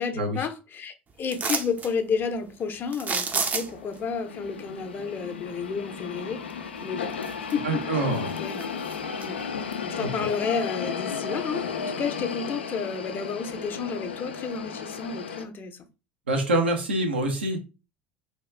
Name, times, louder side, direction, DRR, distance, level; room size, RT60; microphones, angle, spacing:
voice 1, 0.0-6.4 6.8-7.1 7.5-8.1 8.4-8.7 9.2-15.8, left 5 dB, 40° left, 0.6 m, -31 dB
sound 1, 1.3-1.9 2.9-3.9 6.5-6.6 7.1-7.8 8.1-9.3 9.7-9.8, right 5 dB, 30° right, 0.5 m, -30 dB
sound 2, 2.8-15.4, left 6 dB, 90° left, 0.3 m, -34 dB
voice 2, 7.6-8.3 10.2-10.3 16.3-17.6, right 1 dB, 90° right, 0.7 m, -25 dB
2.8 x 2.3 x 3.2 m
hypercardioid pair, 75°, 6 cm